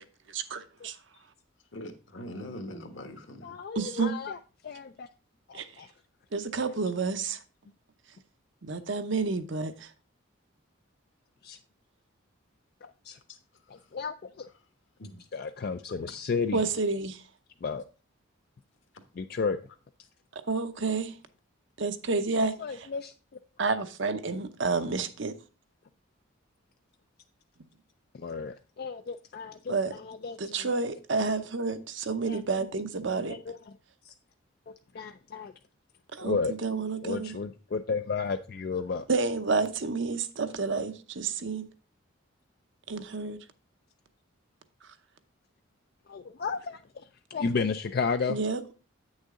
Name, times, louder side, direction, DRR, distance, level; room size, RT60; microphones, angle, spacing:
voice 1, 0.3-1.0 3.8-4.1 5.5-5.7 6.3-7.4 8.6-9.9 16.5-17.2 20.5-21.1 21.8-22.9 23.6-25.3 29.7-29.9 30.4-33.4 36.1-37.3 39.1-41.7 42.9-43.4 48.3-48.6, right 4 dB, 60° right, 0.7 m, -30 dB
voice 2, 1.7-3.6 15.0-15.2, left 1 dB, 65° left, 1.4 m, -42 dB
voice 3, 3.4-4.4 4.6-5.1 5.5-5.9 6.6-6.8 11.4-11.6 12.8-13.2 13.7-14.5 15.3-16.6 17.6-17.8 19.1-19.6 22.6-23.1 28.1-30.7 32.3-32.4 33.3-33.7 34.0-34.1 34.7-35.5 36.2-36.5 37.0-39.1 46.1-48.4, left 5 dB, 50° left, 0.3 m, -33 dB
8.5 x 6.4 x 3.7 m
head